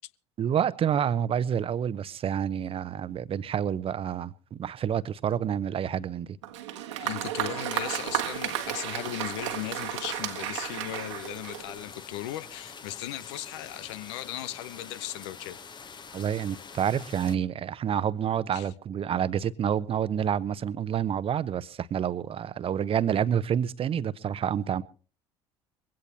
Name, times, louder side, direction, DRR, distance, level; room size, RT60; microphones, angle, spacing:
voice 1, 0.4-6.3 6.9-7.1 16.1-24.8, right 9 dB, 40° right, 0.8 m, -28 dB
Applause, 6.4-12.0, right 12 dB, 75° right, 1.4 m, -33 dB
voice 2, 7.0-15.6 18.5-18.7, left 15 dB, 70° left, 0.6 m, -37 dB
sound 1, 7.7-17.4, left 5 dB, 30° left, 1.2 m, -46 dB
22.0 x 16.5 x 2.9 m
hypercardioid pair, 65°, 15 cm